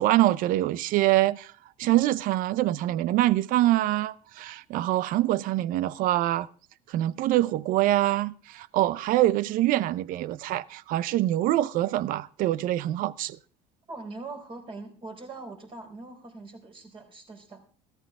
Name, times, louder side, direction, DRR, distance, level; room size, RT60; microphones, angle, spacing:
voice 1, 0.0-1.5 1.8-6.5 6.9-13.4, right 15 dB, 65° right, 0.7 m, -24 dB
voice 2, 13.9-17.6, right 3 dB, 35° right, 4.2 m, -42 dB
15.0 x 13.5 x 3.6 m
supercardioid pair, 95°, 16 cm